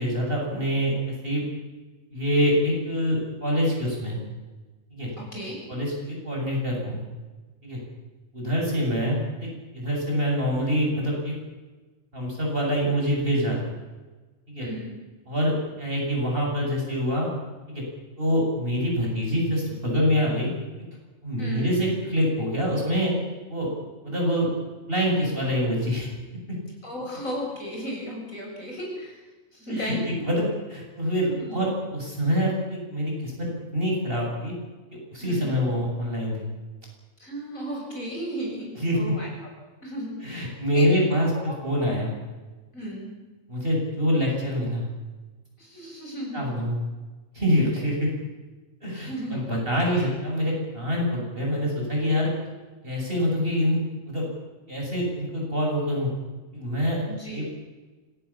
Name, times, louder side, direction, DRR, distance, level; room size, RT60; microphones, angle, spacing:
voice 1, 0.0-1.4 2.1-4.2 4.9-5.1 5.7-7.0 7.6-7.8 8.3-9.5 9.7-11.3 12.1-13.6 14.5-14.7 15.3-17.3 17.7-17.8 18.2-20.5 21.2-23.2 23.5-23.7 24.0-24.5 24.9-26.1 29.7-30.0 30.2-30.4 30.7-34.5 35.1-36.5 38.8-39.1 40.2-42.1 43.5-44.9 46.3-46.8 47.3-48.1 48.8-52.3 52.8-53.8 54.1-54.3 54.7-56.1 56.5-57.0 57.3-57.4, equal, 40° right, -1 dB, 7.8 m, -25 dB
voice 2, 5.2-5.6 14.6-14.9 21.4-21.7 26.8-29.2 29.5-30.1 31.4-31.6 35.2-35.5 37.2-39.5 39.8-41.0 41.3-41.4 42.7-43.1 45.6-46.5 49.0-50.1 57.1-57.4, equal, 75° left, -1 dB, 7.7 m, -35 dB
26.0 x 18.5 x 7.3 m, 1.2 s
omnidirectional pair, 1.4 m